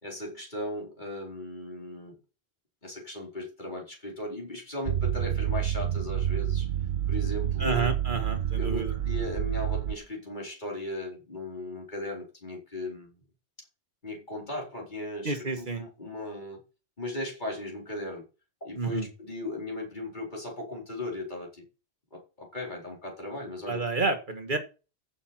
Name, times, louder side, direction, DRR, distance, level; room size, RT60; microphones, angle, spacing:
voice 1, 0.0-2.2 2.8-6.7 7.1-7.9 8.6-13.2 14.0-16.6 17.0-18.2 18.6-21.6 22.1-23.8, left 1 dB, 45° left, -2 dB, 4.4 m, -37 dB
sound 1, 4.9-10.0, right 10 dB, 80° right, 1.0 m, -28 dB
voice 2, 7.6-8.9 15.2-15.8 18.7-19.1 23.7-24.6, right 3 dB, 50° right, 7 dB, 1.8 m, -29 dB
15.0 x 6.7 x 4.4 m, 0.32 s
omnidirectional pair, 1.1 m